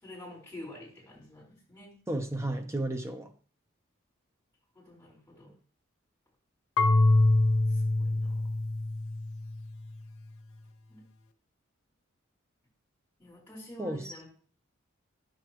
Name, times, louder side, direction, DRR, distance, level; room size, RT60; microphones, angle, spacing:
voice 1, 0.0-1.9 4.7-5.5 7.1-7.2 7.7-8.4 10.9-11.0 13.2-14.3, left 1 dB, 10° left, 4.9 m, -48 dB
voice 2, 2.1-3.3 13.8-14.2, right 1 dB, 15° right, 0.8 m, -33 dB
Marimba xylophone / Wood, 6.8-9.6, left 2 dB, 90° left, 0.7 m, -25 dB
10.5 x 6.8 x 3.1 m
head